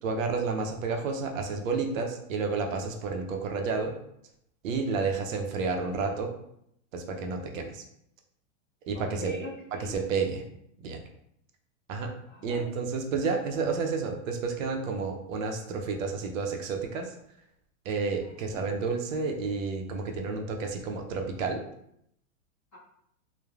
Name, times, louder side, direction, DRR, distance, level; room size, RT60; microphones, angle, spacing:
voice 1, 0.0-3.9 4.6-6.3 6.9-7.8 8.9-9.3 9.8-10.4 10.8-11.0 11.9-12.1 12.4-17.1 17.8-21.6, right 4 dB, 70° right, 4 dB, 0.6 m, -30 dB
voice 2, 8.9-9.9 12.2-12.7 18.2-18.6, right 1 dB, 20° left, -11 dB, 0.6 m, -41 dB
3.2 x 2.0 x 2.3 m, 0.73 s
supercardioid pair, 180°, 41 cm